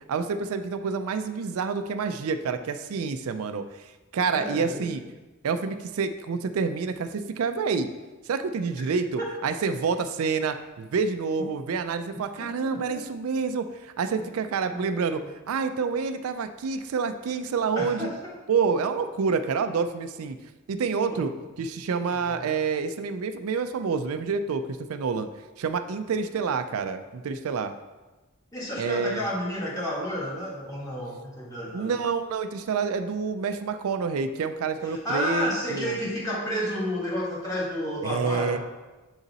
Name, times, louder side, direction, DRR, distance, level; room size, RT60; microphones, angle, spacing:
voice 1, 0.1-3.7 4.1-5.0 5.4-7.9 8.3-15.2 15.5-18.1 18.5-20.4 20.7-21.3 21.6-25.3 25.6-27.7 28.8-29.2 31.7-36.0 38.0-38.6, right 5 dB, 80° right, 8 dB, 0.4 m, -28 dB
voice 2, 4.3-4.9 12.4-13.0 14.7-15.3 17.7-18.3 21.1-21.3 22.0-22.5 28.5-32.0 34.8-38.6, equal, 15° left, -6 dB, 1.5 m, -31 dB
7.1 x 4.0 x 3.9 m, 1.2 s
head